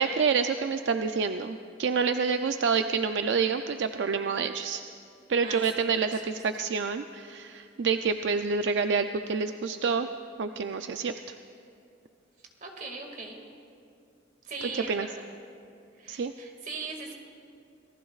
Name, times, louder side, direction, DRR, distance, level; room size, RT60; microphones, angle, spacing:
voice 1, 0.0-4.8 5.3-10.1 10.4-11.3 14.9-15.1 16.1-16.3, right 5 dB, 80° right, 8 dB, 0.4 m, -28 dB
voice 2, 6.1-6.4 12.6-13.4 14.4-15.2 15.9-17.1, right 3 dB, 50° right, 2 dB, 2.1 m, -39 dB
26.5 x 18.5 x 2.4 m, 2.5 s
head